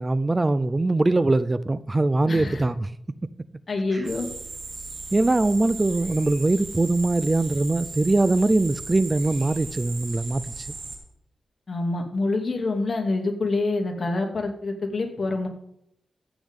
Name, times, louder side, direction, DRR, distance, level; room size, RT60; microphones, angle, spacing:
voice 1, 0.0-2.9 3.9-4.0 5.1-10.7, right 2 dB, 25° right, 0.4 m, -22 dB
voice 2, 2.3-2.6 3.7-4.3 11.7-15.5, left 2 dB, 45° left, 2.5 m, -26 dB
sound 1, 4.0-11.0, right 3 dB, 70° right, 3.7 m, -37 dB
14.5 x 9.0 x 3.7 m
cardioid pair, 80°, 0 cm